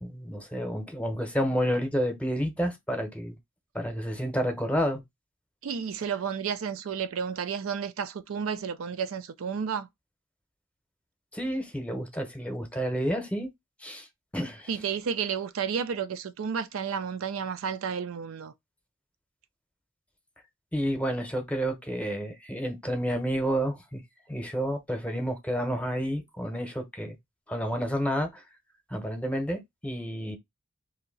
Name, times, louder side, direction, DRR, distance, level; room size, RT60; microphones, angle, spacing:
voice 1, 0.0-3.4 3.7-5.0 11.3-13.5 13.8-14.1 14.3-14.7 20.7-24.0 24.3-27.2 27.5-28.4 28.9-30.4, equal, 5° left, 0.8 m, -30 dB
voice 2, 5.6-9.9 14.7-18.5, right 7 dB, 75° right, 0.4 m, -31 dB
2.8 x 2.7 x 3.9 m
head